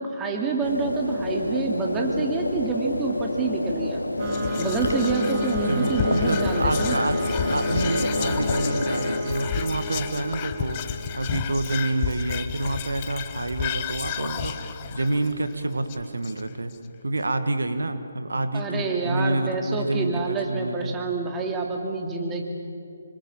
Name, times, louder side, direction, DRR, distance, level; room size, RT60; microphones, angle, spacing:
voice 1, 0.1-4.0 4.6-7.0 18.5-22.4, right 4 dB, 15° right, 1 dB, 2.7 m, -27 dB
sound 1, 0.6-9.2, left 1 dB, 90° left, 2.3 m, -28 dB
Whispering, 4.2-16.7, left 8 dB, 30° left, 1.1 m, -32 dB
sound 2, 4.2-11.5, equal, 30° right, 3.3 m, -33 dB
voice 2, 5.5-16.7 17.0-20.9, right 2 dB, 75° right, 9 dB, 1.6 m, -28 dB
26.0 x 24.5 x 7.3 m, 2.4 s
figure-of-eight pair, 150°, 0 cm